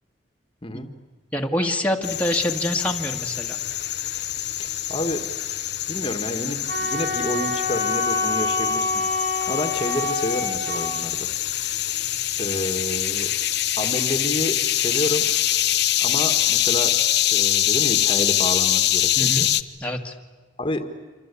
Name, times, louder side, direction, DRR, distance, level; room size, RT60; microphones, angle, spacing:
voice 1, 1.3-3.6 19.2-19.5 19.8-20.1, left 1 dB, 10° left, 0 dB, 1.8 m, -25 dB
sound 1, 2.0-19.6, left 12 dB, 65° left, 0.9 m, -24 dB
voice 2, 4.6-5.3 5.9-9.0 9.5-11.3 11.9-12.0 12.4-13.3 13.8-15.2 16.0-16.9 17.2-19.5 20.6-20.8, left 1 dB, 30° left, 6 dB, 1.7 m, -29 dB
Wind instrument woodwind instrument, 6.7-10.9, left 3 dB, 60° right, 5.5 m, -26 dB
27.0 x 26.0 x 8.4 m, 1.4 s
head